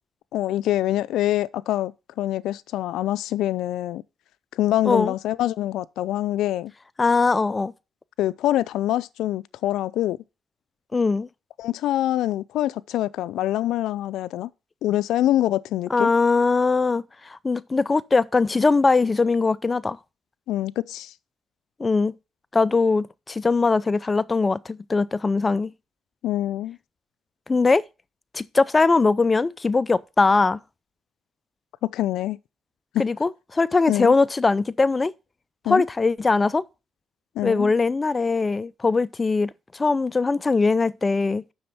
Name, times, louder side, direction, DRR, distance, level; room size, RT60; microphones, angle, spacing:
voice 1, 0.3-4.0 4.5-6.7 8.2-10.2 11.6-14.5 14.8-16.1 20.5-21.1 26.2-26.8 31.8-32.4 32.9-33.1 33.9-34.1 35.7-35.8 37.4-37.7, left 13 dB, 85° left, 0.4 m, -25 dB
voice 2, 7.0-7.7 10.9-11.3 15.9-17.0 17.3-20.0 21.8-22.1 22.5-25.7 27.5-27.8 28.3-30.6 33.0-35.1 35.7-36.6 37.4-41.4, left 3 dB, 25° left, 0.5 m, -21 dB
7.8 x 6.2 x 5.6 m
cardioid pair, 90°, 0 cm